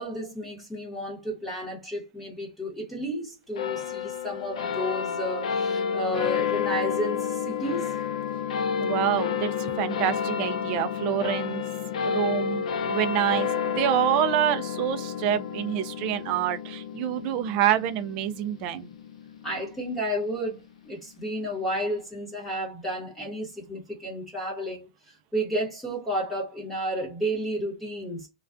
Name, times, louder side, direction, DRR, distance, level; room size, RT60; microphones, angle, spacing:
voice 1, 0.0-8.0 19.4-28.3, equal, 5° left, 1.0 m, -32 dB
sound 1, 3.6-20.3, left 7 dB, 70° left, 0.5 m, -30 dB
voice 2, 8.8-11.7 12.0-13.5 13.8-18.9, right 10 dB, 25° right, 0.3 m, -27 dB
2.3 x 2.2 x 2.4 m
supercardioid pair, 170°, 4 cm